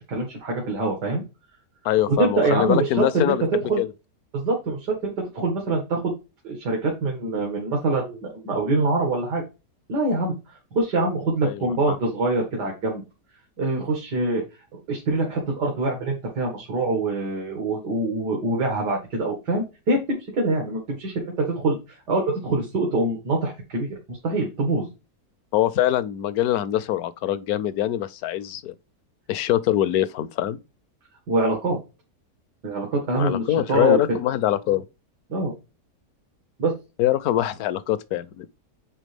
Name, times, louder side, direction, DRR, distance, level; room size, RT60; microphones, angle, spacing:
voice 1, 0.1-1.2 2.1-3.3 3.7-3.8 4.3-6.0 6.4-9.4 9.9-10.4 10.7-13.0 13.6-14.4 14.9-24.9 31.3-31.8 32.6-34.0 35.3-35.5 36.6-36.7, right 2 dB, 90° right, 2.5 m, -24 dB
voice 2, 1.8-3.9 11.4-12.0 25.5-28.7 29.3-30.6 33.2-34.8 37.0-38.5, left 13 dB, 70° left, 1.1 m, -23 dB
9.1 x 3.9 x 3.4 m
omnidirectional pair, 1.8 m